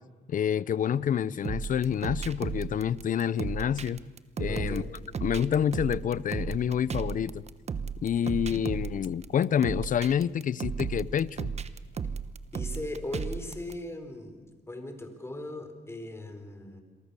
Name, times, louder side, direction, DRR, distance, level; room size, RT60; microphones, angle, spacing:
voice 1, 0.3-4.0 4.4-4.8 5.2-7.4 8.0-11.5, left 8 dB, 50° left, 0.7 m, -28 dB
sound 1, 1.4-13.7, right 6 dB, 40° right, 1.1 m, -35 dB
voice 2, 4.5-4.9 12.5-16.8, left 2 dB, 15° left, 4.2 m, -39 dB
28.0 x 23.0 x 6.9 m
cardioid pair, 105°, 18 cm